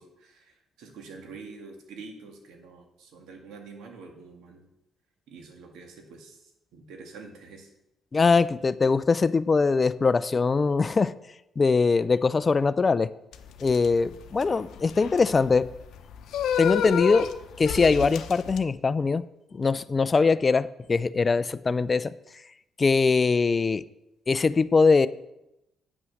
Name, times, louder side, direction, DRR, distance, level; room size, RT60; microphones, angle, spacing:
voice 1, 0.0-4.7 5.3-7.7, right 4 dB, 85° right, 3 dB, 2.0 m, -46 dB
voice 2, 8.1-11.1 11.6-13.1 13.6-15.7 16.6-17.3 17.6-19.2 19.5-22.1 22.8-23.8 24.3-25.1, left 4 dB, 30° left, 16 dB, 0.4 m, -22 dB
sound 1, 13.3-18.6, left 8 dB, 80° left, 0.7 m, -30 dB
9.2 x 6.1 x 6.4 m, 0.89 s
cardioid pair, 90°, 0 cm